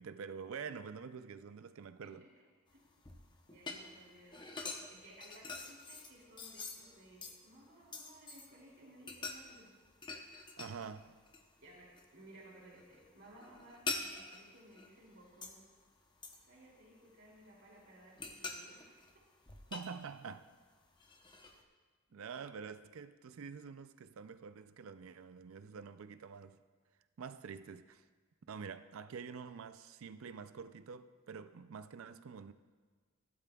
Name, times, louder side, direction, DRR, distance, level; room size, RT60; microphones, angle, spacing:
voice 1, 0.0-2.3 10.6-11.1 19.7-20.5 22.1-26.6 27.2-28.0 28.5-32.5, right 6 dB, 75° right, 0.4 m, -47 dB
sound 1, 2.7-8.6 9.0-11.0 11.3-12.1 12.4-15.7 16.2-17.4 17.8-20.5 21.0-21.6, left 3 dB, 20° left, 0.8 m, -46 dB
voice 2, 3.5-4.6 4.9-9.7 11.6-15.6 16.4-19.1, right 1 dB, 55° right, 2.7 m, -59 dB
16.0 x 12.0 x 2.3 m
head